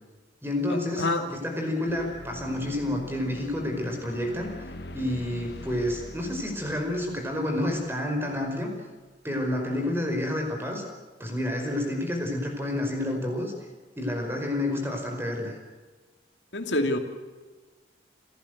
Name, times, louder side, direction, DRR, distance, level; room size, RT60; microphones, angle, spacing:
voice 1, 0.4-4.5 4.9-8.7 9.2-10.8 11.2-13.5 14.0-15.6, left 1 dB, 10° right, 3 dB, 5.0 m, -29 dB
sound 1, 1.9-8.5, left 1 dB, 60° left, 1.3 m, -42 dB
voice 2, 16.5-17.0, left 2 dB, 80° left, 5 dB, 2.5 m, -25 dB
29.5 x 14.0 x 8.0 m, 1.3 s
head